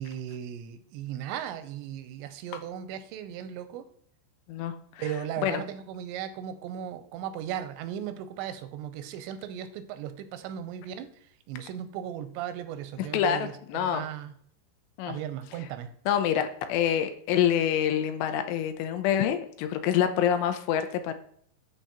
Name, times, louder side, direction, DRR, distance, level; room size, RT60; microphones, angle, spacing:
voice 1, 0.0-3.9 5.0-11.1 11.5-14.3 15.1-15.9, right 10 dB, 90° right, 10 dB, 2.9 m, -37 dB
voice 2, 4.5-5.0 5.4-5.6 13.1-14.0 15.0-15.2 16.1-21.1, left 9 dB, 80° left, 8 dB, 2.7 m, -26 dB
12.5 x 4.4 x 2.9 m, 0.63 s
omnidirectional pair, 5.1 m